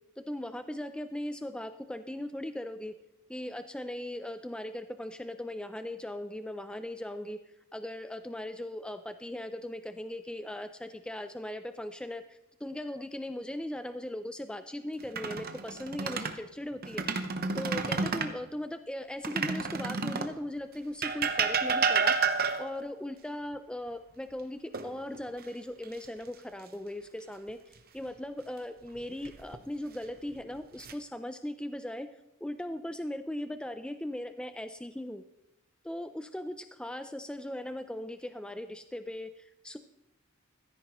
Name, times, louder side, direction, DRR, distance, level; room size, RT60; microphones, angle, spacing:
voice 1, 0.2-3.0 3.3-7.4 7.7-17.0 17.6-22.2 22.6-32.1 32.4-35.2 35.8-39.8, left 1 dB, 5° left, 9 dB, 0.4 m, -39 dB
sound 1, 15.0-16.4 16.8-18.4 19.2-20.4 21.0-22.8 24.7-25.4 25.8-26.0 29.0-29.6 30.3-30.9, right 5 dB, 45° right, 0.9 m, -30 dB
15.5 x 13.5 x 3.1 m, 0.87 s
head